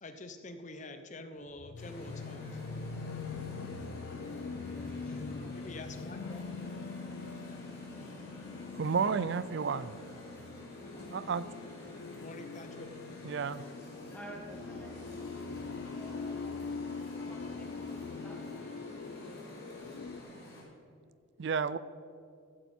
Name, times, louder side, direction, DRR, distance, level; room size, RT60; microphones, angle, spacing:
voice 1, 0.0-2.6 5.1-6.2 12.2-12.9, left 2 dB, 35° left, 8 dB, 0.7 m, -47 dB
sound 1, 1.5-20.2, left 4 dB, 75° left, 0.5 m, -43 dB
sound 2, 1.8-20.6, left 1 dB, 50° left, 3.3 m, -49 dB
voice 2, 4.3-5.2 6.3-6.4 14.1-14.9 15.9-16.4 17.2-17.7 18.1-18.8 19.1-19.4, right 1 dB, 5° left, -2 dB, 2.0 m, -51 dB
voice 3, 8.7-10.0 11.1-11.5 13.2-13.6 21.4-21.8, right 5 dB, 55° right, 16 dB, 0.4 m, -31 dB
15.0 x 9.2 x 4.4 m, 2.4 s
head